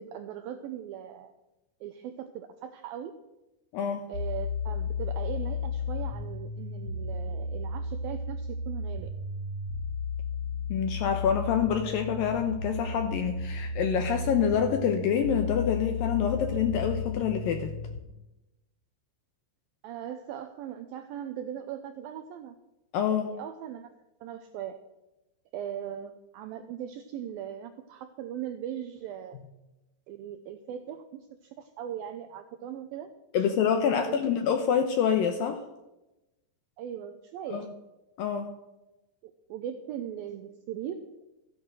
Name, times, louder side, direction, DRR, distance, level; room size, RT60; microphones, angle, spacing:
voice 1, 0.0-1.3 1.8-3.1 4.1-9.1 19.8-22.6 23.1-23.9 24.2-24.8 25.5-29.4 30.1-33.1 33.4-33.5 34.0-34.2 36.8-37.7 39.2-41.3, right 10 dB, 85° right, 8 dB, 2.1 m, -39 dB
sound 1, 4.1-18.0, left 4 dB, 40° left, 4.7 m, -34 dB
voice 2, 10.7-17.7 22.9-23.3 33.3-35.6 37.5-37.7 38.2-38.5, left 8 dB, 75° left, 6 dB, 2.1 m, -26 dB
14.5 x 9.1 x 6.2 m, 0.98 s
omnidirectional pair, 5.0 m